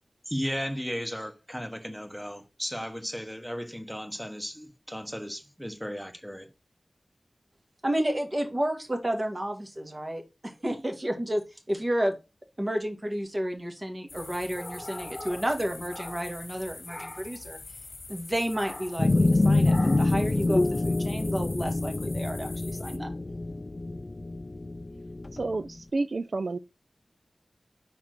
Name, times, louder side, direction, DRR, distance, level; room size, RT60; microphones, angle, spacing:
voice 1, 0.3-6.5, equal, ahead, 1.3 m, -35 dB
voice 2, 7.8-11.4 11.7-12.1 12.6-17.6 18.1-23.1, equal, 30° right, 1.8 m, -31 dB
sound 1, 14.1-23.0, left 3 dB, 80° left, 0.8 m, -45 dB
sound 2, 14.1-16.6 16.9-17.4 18.5-19.1 19.6-20.2, left 1 dB, 25° left, 1.6 m, -43 dB
sound 3, 19.0-25.6, left 2 dB, 40° left, 0.4 m, -26 dB
voice 3, 25.3-26.6, right 3 dB, 70° right, 0.4 m, -30 dB
5.0 x 4.4 x 6.0 m
wide cardioid pair, 60°, 0 cm